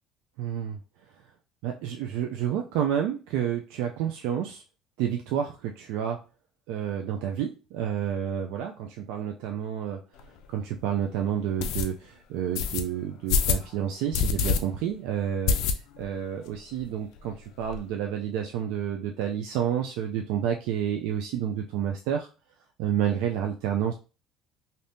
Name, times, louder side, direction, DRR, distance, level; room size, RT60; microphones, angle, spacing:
voice 1, 0.4-0.8 1.6-4.6 5.0-6.2 6.7-10.0 10.5-22.3 22.8-23.9, right 9 dB, 85° right, 2 dB, 0.4 m, -30 dB
sound 1, 10.2-10.3 10.8-10.9 11.6-11.9 12.6-12.8 13.3-13.7 14.1-14.6 14.9-15.0 15.5-16.1 16.5-16.6 16.8-16.9 17.2-17.8, left 6 dB, 70° left, 0.4 m, -25 dB
2.7 x 2.7 x 3.4 m, 0.33 s
cardioid pair, 145°, 0 cm